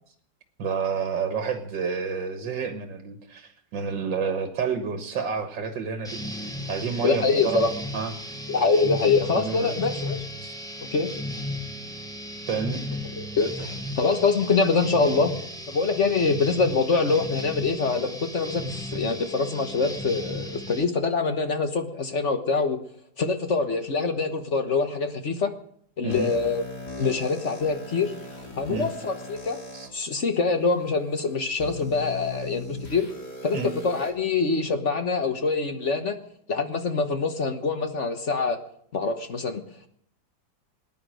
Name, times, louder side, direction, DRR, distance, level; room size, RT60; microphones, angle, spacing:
voice 1, 0.6-6.2 6.7-7.6 7.9-8.1 9.3-9.7 10.4-10.5 12.5-12.8 26.0-26.3 28.7-28.9 29.7-29.9 33.5-33.7, right 6 dB, 90° right, 6 dB, 2.1 m, -29 dB
sound 1, 6.0-20.8, left 1 dB, ahead, 1.0 m, -35 dB
voice 2, 7.0-7.7 8.5-10.2 10.8-11.1 13.1-15.3 15.7-22.8 23.2-25.5 26.0-26.6 27.0-28.1 28.6-29.6 29.9-33.1 33.4-36.2 36.5-38.6 38.9-39.6, left 4 dB, 45° left, 7 dB, 1.4 m, -24 dB
sound 2, 26.1-29.9 30.6-30.7 31.6-34.1, left 2 dB, 65° left, 3.7 m, -39 dB
20.0 x 10.5 x 6.4 m, 0.66 s
omnidirectional pair, 1.9 m